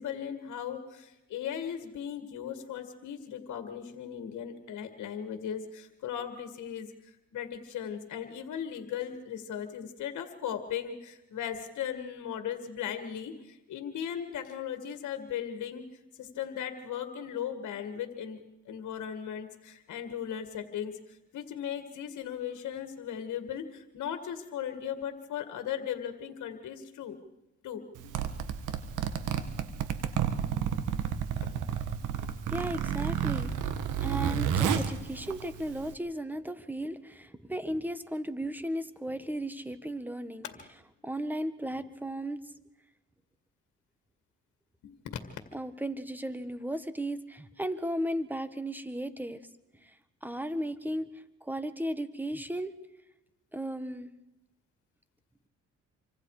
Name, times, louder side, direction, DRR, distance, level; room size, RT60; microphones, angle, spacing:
voice 1, 0.0-15.8 16.2-18.4 18.7-27.2 27.6-28.1 44.8-45.2, left 9 dB, 70° left, 7 dB, 2.1 m, -37 dB
Zipper (clothing), 28.0-35.9, right 8 dB, 85° right, 1.7 m, -31 dB
voice 2, 32.5-33.5 34.0-40.5 41.0-42.4 45.5-49.4 49.8-49.9 50.2-51.1 51.4-52.7 53.5-54.1, right 1 dB, 5° right, 12 dB, 1.5 m, -35 dB
27.5 x 25.0 x 4.9 m, 0.95 s
cardioid pair, 90°, 30 cm